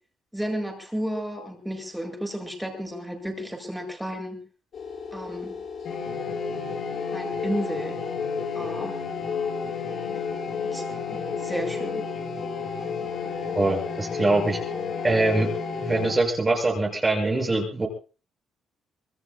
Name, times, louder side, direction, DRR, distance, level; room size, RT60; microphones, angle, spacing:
voice 1, 0.3-4.4 5.1-5.5 7.1-8.0 8.5-9.0 10.1-10.2 10.6-10.8 11.1-12.0, equal, 5° right, 3 dB, 7.7 m, -32 dB
sound 1, 4.7-16.1, left 5 dB, 60° left, 6.3 m, -31 dB
voice 2, 13.5-14.6 15.0-15.5 15.8-17.9, right 2 dB, 25° right, 0 dB, 7.0 m, -23 dB
26.5 x 21.0 x 2.3 m, 0.35 s
cardioid pair, 90°, 0 cm